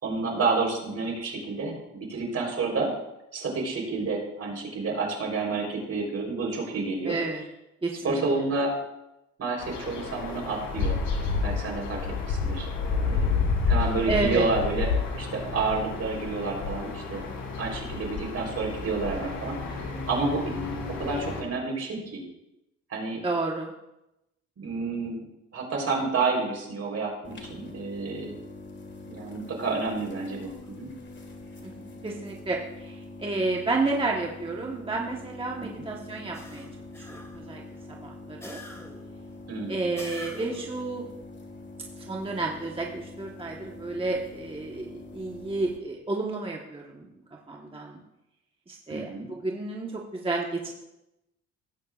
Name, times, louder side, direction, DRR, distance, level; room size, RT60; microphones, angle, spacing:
voice 1, 0.0-2.9 3.3-7.2 8.0-8.7 9.4-11.0 11.4-12.0 12.3-12.7 12.9-13.3 13.7-17.2 17.6-20.4 20.7-22.2 22.9-23.2 24.6-25.3 25.5-28.4 29.1-30.9 35.7-35.8 39.5-39.8 48.9-49.3, right 3 dB, 55° right, -1 dB, 3.9 m, -30 dB
voice 2, 7.0-7.4 7.8-8.2 14.1-14.4 23.1-23.7 31.6-36.7 37.0-37.6 37.9-38.6 39.7-41.1 42.1-47.1 47.5-48.0 48.7-50.7, right 3 dB, 20° right, -1 dB, 1.2 m, -31 dB
sound 1, 9.6-21.4, left 4 dB, 80° left, 3.1 m, -30 dB
sound 2, 27.2-45.8, left 2 dB, 35° left, 1.9 m, -44 dB
sound 3, 36.3-37.5 38.4-39.1 40.0-40.8, left 1 dB, 10° left, 1.8 m, -44 dB
17.0 x 8.5 x 2.5 m, 0.91 s
cardioid pair, 90°, 30 cm